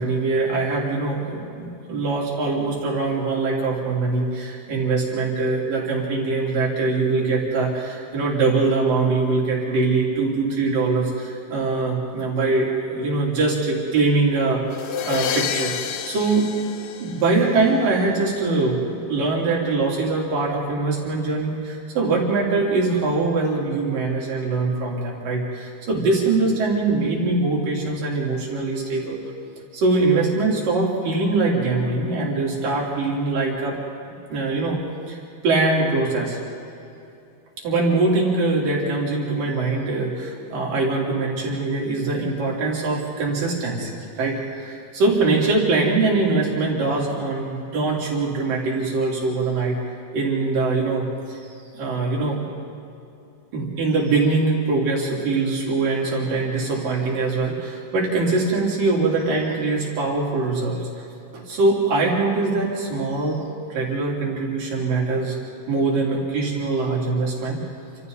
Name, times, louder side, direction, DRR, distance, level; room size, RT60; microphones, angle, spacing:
voice 1, 0.0-14.6 15.1-16.6 17.0-29.2 29.7-33.8 34.3-34.8 35.1-35.2 35.4-36.4 37.6-49.8 50.1-51.5 51.7-52.4 53.5-61.0 61.3-63.4 63.7-65.4 65.7-67.6, right 3 dB, 85° right, -3 dB, 5.3 m, -22 dB
sound 1, 14.7-17.7, left 8 dB, 80° left, 1.2 m, -29 dB
29.5 x 26.5 x 4.1 m, 2.7 s
omnidirectional pair, 3.8 m